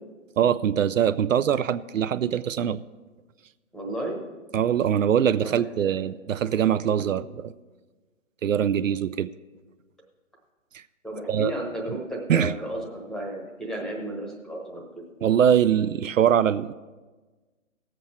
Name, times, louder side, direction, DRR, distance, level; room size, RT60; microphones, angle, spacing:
voice 1, 0.4-2.8 4.5-7.5 8.4-9.3 10.7-10.8 11.3-11.5 12.3-12.5 15.2-16.7, right 9 dB, 70° right, 14 dB, 0.5 m, -23 dB
voice 2, 3.7-4.2 5.4-6.0 7.0-7.2 11.0-15.0, right 1 dB, ahead, 0 dB, 1.0 m, -33 dB
18.0 x 7.7 x 4.4 m, 1.3 s
figure-of-eight pair, 140°, 40 cm